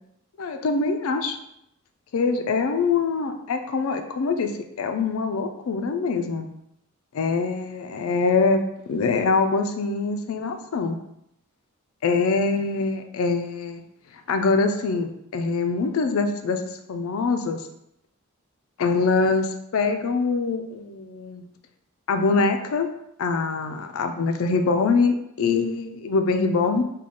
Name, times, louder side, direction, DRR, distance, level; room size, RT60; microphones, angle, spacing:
voice 1, 0.4-1.4 2.1-4.5 4.8-6.5 7.1-8.6 8.9-11.0 12.0-13.8 14.3-16.6 16.9-17.7 18.8-21.5 22.1-22.9 23.2-26.8, left 4 dB, 70° left, 6 dB, 0.4 m, -24 dB
3.7 x 2.3 x 3.5 m, 0.78 s
head